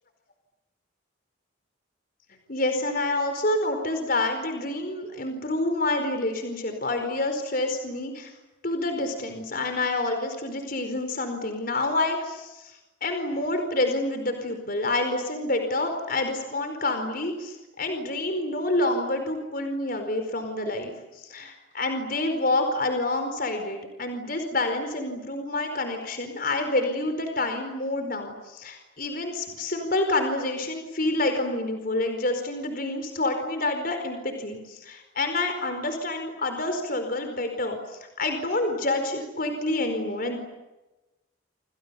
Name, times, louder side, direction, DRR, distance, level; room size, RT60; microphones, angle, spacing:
voice 1, 2.5-8.3 8.6-40.4, left 2 dB, 50° left, 6 dB, 4.7 m, -28 dB
29.0 x 28.0 x 7.0 m, 1.0 s
head